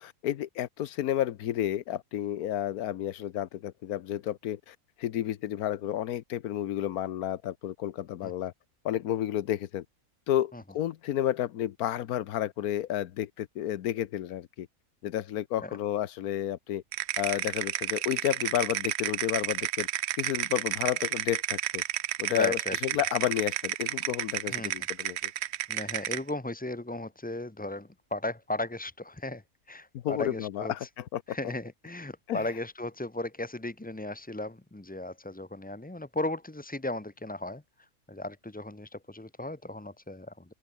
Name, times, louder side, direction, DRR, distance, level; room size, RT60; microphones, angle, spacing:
voice 1, 0.0-8.5 8.8-9.8 10.3-14.7 15.0-16.8 17.2-19.9 20.2-21.8 22.2-25.3 29.9-31.4 32.3-32.4, left 12 dB, 85° left, 1.3 m, -31 dB
sound 1, 16.9-26.3, right 12 dB, 65° right, 0.7 m, -31 dB
voice 2, 22.3-22.8 24.5-24.7 25.7-29.4 29.7-30.9 31.3-37.6 38.1-40.5, left 1 dB, 10° left, 0.5 m, -36 dB
open air
omnidirectional pair, 1.5 m